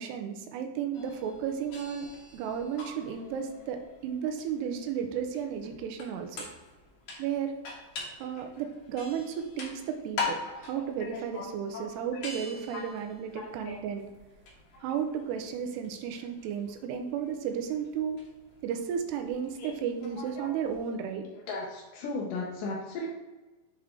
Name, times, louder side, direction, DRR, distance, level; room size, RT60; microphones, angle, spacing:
voice 1, 0.0-2.1 2.3-6.5 7.2-7.6 8.2-14.1 14.8-18.2 18.6-21.3, right 8 dB, 80° right, 5 dB, 2.8 m, -33 dB
sound 1, 0.9-20.8, left 4 dB, 55° left, 2.4 m, -44 dB
voice 2, 11.0-11.5 11.7-11.9 12.2-12.3 12.7-12.8 13.4-13.8 14.7-14.8 19.6-19.7 20.2-20.5 21.5-23.1, left 3 dB, 80° left, -2 dB, 1.9 m, -37 dB
7.3 x 4.8 x 3.7 m, 1.2 s
omnidirectional pair, 4.9 m